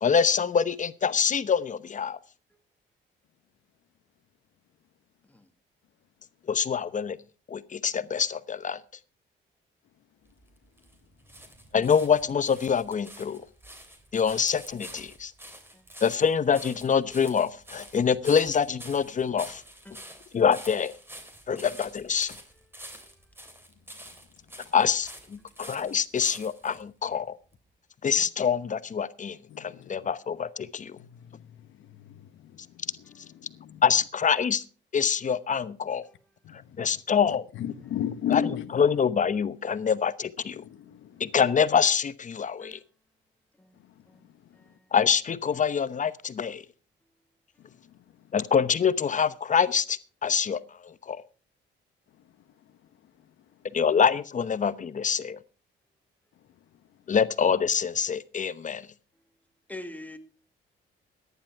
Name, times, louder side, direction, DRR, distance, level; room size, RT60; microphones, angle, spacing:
voice 1, 0.0-2.2 6.5-7.2 7.5-8.8 11.7-13.4 14.1-15.3 16.0-19.6 20.3-20.9 21.5-22.4 24.7-27.3 28.0-31.0 33.8-34.6 34.9-36.1 36.5-37.4 38.3-38.4 38.7-40.6 41.2-42.8 44.9-46.6 48.3-51.2 53.7-55.4 57.1-58.9, left 7 dB, 40° left, 0.9 m, -25 dB
sound 1, 10.3-26.8 27.5-27.6, right 1 dB, 10° right, 3.2 m, -47 dB
voice 2, 19.9-20.2 23.0-23.3 36.0-36.3 42.6-42.8 43.6-43.7 44.1-44.2 44.5-44.8 59.7-60.2, left 1 dB, 10° left, 2.0 m, -45 dB
voice 3, 29.5-30.1 31.0-32.6 33.4-33.8 36.4-36.9 37.5-38.7 40.6-41.3, left 9 dB, 80° left, 1.0 m, -35 dB
15.0 x 10.5 x 4.6 m
cardioid pair, 90°, 20 cm